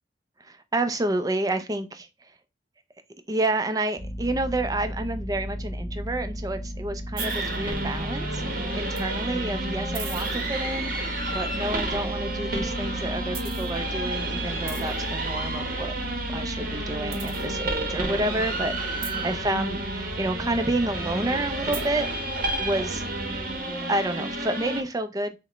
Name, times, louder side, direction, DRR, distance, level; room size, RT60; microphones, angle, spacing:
voice 1, 0.4-2.1 3.3-15.9 16.3-23.0 23.7-25.4, right 2 dB, 20° right, 0.5 m, -29 dB
sound 1, 4.0-23.6, equal, 35° left, 1.0 m, -36 dB
sound 2, 7.2-24.8, right 2 dB, 50° right, 0.9 m, -31 dB
6.1 x 2.2 x 3.0 m
head